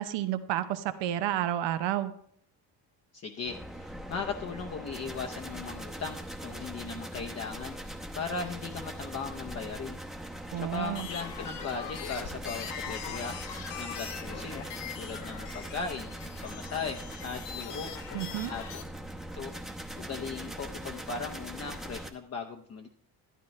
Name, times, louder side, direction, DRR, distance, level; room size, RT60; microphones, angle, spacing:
voice 1, 0.0-2.1 10.5-11.1 18.1-18.5, right 12 dB, 80° right, 10 dB, 0.9 m, -30 dB
voice 2, 3.1-10.0 10.5-13.4 13.8-14.6 15.0-16.1 16.4-17.9 18.5-18.6 19.3-19.5 20.0-22.9, left 5 dB, 35° left, 3 dB, 0.8 m, -38 dB
sound 1, 3.4-22.1, right 1 dB, ahead, 0.8 m, -41 dB
sound 2, 10.8-18.8, left 8 dB, 70° left, 1.1 m, -42 dB
12.0 x 10.5 x 3.2 m, 0.63 s
cardioid pair, 115°, 42 cm